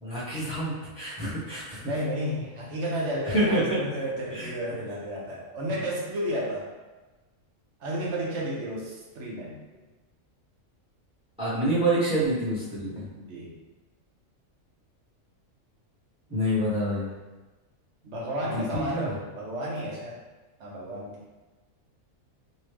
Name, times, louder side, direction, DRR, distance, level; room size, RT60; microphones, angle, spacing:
voice 1, 0.0-1.8 3.2-3.8 4.3-4.5 11.4-13.1 16.3-17.1 18.5-19.1, right 1 dB, 5° right, -10 dB, 0.9 m, -27 dB
voice 2, 1.8-6.7 7.8-9.6 13.2-13.5 18.0-20.2 20.6-21.2, equal, 65° right, -3 dB, 0.9 m, -32 dB
3.2 x 2.6 x 3.2 m, 1.2 s
omnidirectional pair, 1.4 m